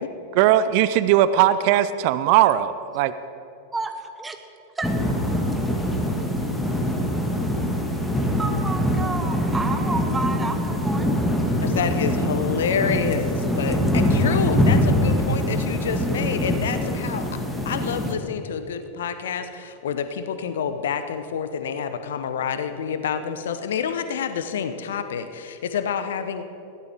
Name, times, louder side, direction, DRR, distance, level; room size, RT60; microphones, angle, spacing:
voice 1, 0.3-3.1, right 12 dB, 45° right, 14 dB, 0.5 m, -19 dB
voice 2, 3.7-4.3 4.8-4.9 8.4-11.1, right 3 dB, 10° right, 6 dB, 1.3 m, -30 dB
sound 1, 4.8-18.1, equal, 5° left, 1.9 m, -23 dB
voice 3, 11.6-17.3 17.6-26.4, left 7 dB, 60° left, 10 dB, 0.9 m, -28 dB
22.0 x 16.0 x 3.6 m, 2.7 s
figure-of-eight pair, 90°, 0 cm